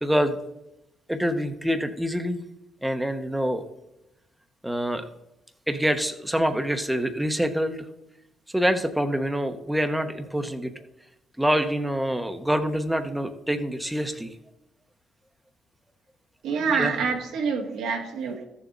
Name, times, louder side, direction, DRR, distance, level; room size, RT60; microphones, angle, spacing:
voice 1, 0.0-0.4 1.1-2.4 2.8-3.6 4.6-5.0 5.7-7.8 8.5-10.7 11.4-14.3 16.7-16.9, equal, 5° right, 7 dB, 1.1 m, -26 dB
voice 2, 16.4-18.4, right 5 dB, 85° right, 1 dB, 1.9 m, -26 dB
13.5 x 7.1 x 4.0 m, 0.89 s
cardioid pair, 90°, 0 cm